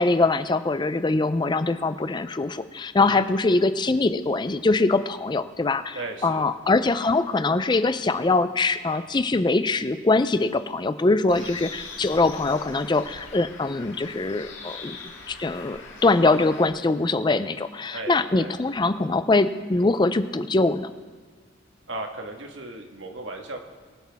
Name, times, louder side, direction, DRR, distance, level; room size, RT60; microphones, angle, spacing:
voice 1, 0.0-15.0 15.3-20.9, left 3 dB, 25° left, 12 dB, 0.4 m, -23 dB
voice 2, 5.9-6.5 11.3-11.7 17.9-18.5 21.9-23.7, right 2 dB, 70° right, 3 dB, 1.5 m, -36 dB
Bird, 11.3-16.7, left 4 dB, 70° left, 1.9 m, -42 dB
23.0 x 8.1 x 3.5 m, 1.5 s
head